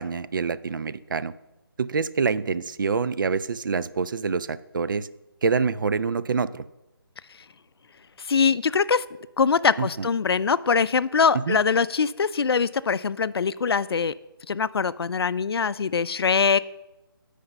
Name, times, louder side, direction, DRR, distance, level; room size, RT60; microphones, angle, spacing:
voice 1, 0.0-1.3 1.8-5.1 5.4-6.6 9.8-10.1 11.5-11.6, right 5 dB, 55° right, 15 dB, 0.4 m, -26 dB
voice 2, 8.2-9.0 9.4-14.1 14.5-16.6, left 5 dB, 80° left, 17 dB, 0.4 m, -23 dB
7.8 x 5.0 x 5.4 m, 0.97 s
figure-of-eight pair, 160°, 13 cm